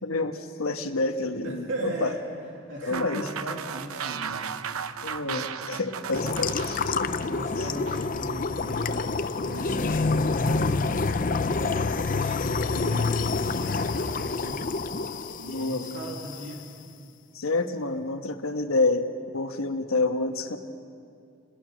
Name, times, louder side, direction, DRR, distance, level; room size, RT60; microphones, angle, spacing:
voice 1, 0.0-2.1 2.8-3.2 5.0-7.1 7.6-7.7 15.5-16.0 17.3-19.1 19.3-20.6, left 3 dB, 80° left, 5 dB, 1.4 m, -28 dB
voice 2, 1.4-2.2 2.5-4.9 5.2-5.4 7.3-9.2 9.4-10.8 11.6-14.7 15.4-16.7, right 1 dB, 65° right, -2 dB, 2.7 m, -38 dB
sound 1, 2.9-8.1, right 7 dB, 90° right, 0.8 m, -35 dB
sound 2, 6.1-16.5, left 3 dB, 40° left, 0.5 m, -27 dB
29.0 x 21.5 x 6.4 m, 2.4 s
head